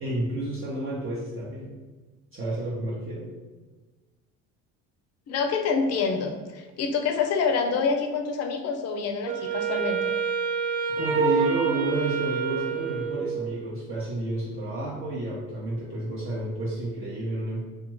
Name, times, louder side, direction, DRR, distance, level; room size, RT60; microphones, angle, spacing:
voice 1, 0.0-1.7 2.3-3.3 11.0-17.7, right 2 dB, 35° right, -7 dB, 0.8 m, -30 dB
voice 2, 5.3-10.1, left 5 dB, 45° left, 5 dB, 0.5 m, -27 dB
Wind instrument woodwind instrument, 9.2-13.6, right 5 dB, 85° right, 0.5 m, -27 dB
2.4 x 2.3 x 3.0 m, 1.3 s
hypercardioid pair, 70°, 36 cm